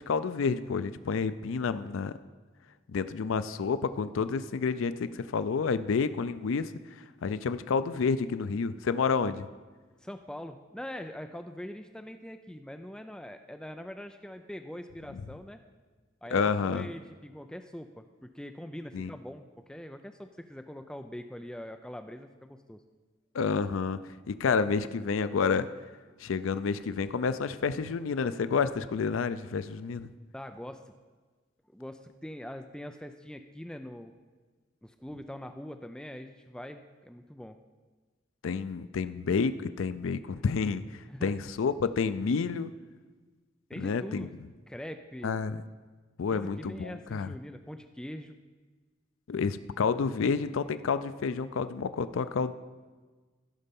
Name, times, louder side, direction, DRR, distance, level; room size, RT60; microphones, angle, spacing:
voice 1, 0.0-2.1 2.9-6.7 7.2-9.5 15.1-15.2 16.3-16.9 18.9-19.1 23.3-24.0 24.3-25.7 26.2-30.1 38.4-42.7 43.8-44.3 45.2-45.6 46.2-47.3 49.3-52.5, left 5 dB, 90° left, 13 dB, 0.4 m, -29 dB
voice 2, 10.0-15.6 16.2-22.8 30.3-30.9 31.7-34.1 34.8-37.6 41.1-41.3 43.7-44.3 44.7-45.4 46.3-48.4, equal, 5° left, 7 dB, 0.3 m, -43 dB
15.5 x 5.4 x 5.3 m, 1.4 s
head